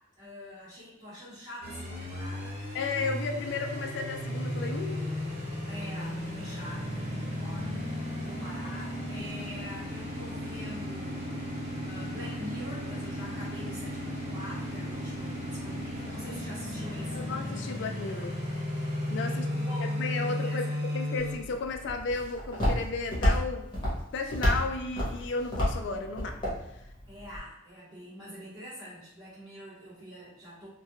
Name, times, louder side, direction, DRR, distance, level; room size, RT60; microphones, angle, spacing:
voice 1, 0.2-2.6 5.7-7.9 8.1-11.4 11.8-17.3 19.2-21.0 27.1-30.7, equal, 20° right, -14 dB, 0.9 m, -45 dB
sound 1, 1.6-21.3, left 1 dB, 45° right, 1.1 m, -35 dB
voice 2, 2.7-5.2 17.1-18.4 19.1-19.5 19.8-23.7 24.1-26.4, left 4 dB, 65° left, 5 dB, 0.3 m, -33 dB
Walk footsteps, 21.2-27.4, equal, 25° left, 0.9 m, -31 dB
2.3 x 2.2 x 2.8 m, 0.88 s
head